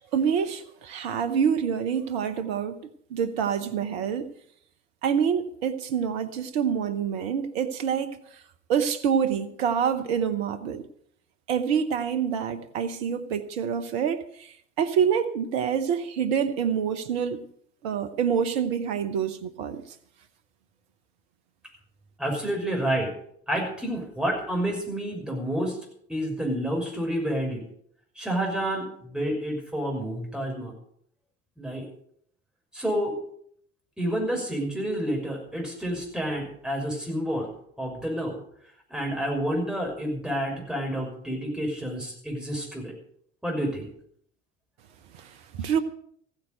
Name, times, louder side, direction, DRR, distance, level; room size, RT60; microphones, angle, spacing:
voice 1, 0.1-2.8 3.1-4.3 5.0-8.2 8.7-10.8 11.5-14.2 14.8-17.4 17.8-19.8 45.6-45.8, right 7 dB, 65° right, 1.1 m, -26 dB
voice 2, 22.2-23.1 23.5-25.8 26.1-27.6 28.2-30.7 31.6-31.8 32.7-33.1 34.0-37.5 37.8-38.4 38.9-42.9 43.4-43.9 45.6-45.7, right 1 dB, ahead, 5.9 m, -29 dB
15.0 x 9.6 x 6.7 m
figure-of-eight pair, 65°, 34 cm